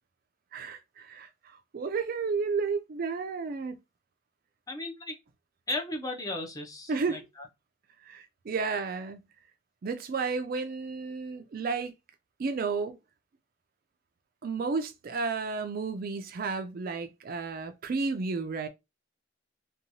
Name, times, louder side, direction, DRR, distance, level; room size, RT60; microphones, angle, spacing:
voice 1, 0.5-1.3 1.7-3.8 6.9-7.2 8.1-9.3 9.8-11.9 12.4-13.0 14.4-18.7, right 4 dB, 45° right, 0.4 m, -32 dB
voice 2, 4.7-5.2 5.7-7.4, left 2 dB, 20° left, 0.5 m, -35 dB
2.8 x 2.2 x 2.6 m
head